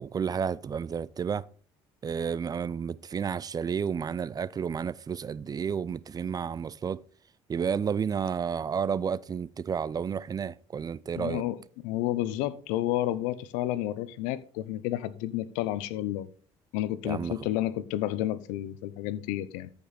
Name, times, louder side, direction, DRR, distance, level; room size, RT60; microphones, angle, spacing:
voice 1, 0.0-1.4 2.0-7.0 7.5-11.4 17.0-17.4, right 7 dB, 30° right, 0.4 m, -31 dB
voice 2, 11.1-16.3 16.7-19.7, left 14 dB, 85° left, 0.7 m, -31 dB
13.5 x 5.3 x 4.1 m
supercardioid pair, 85°, 13 cm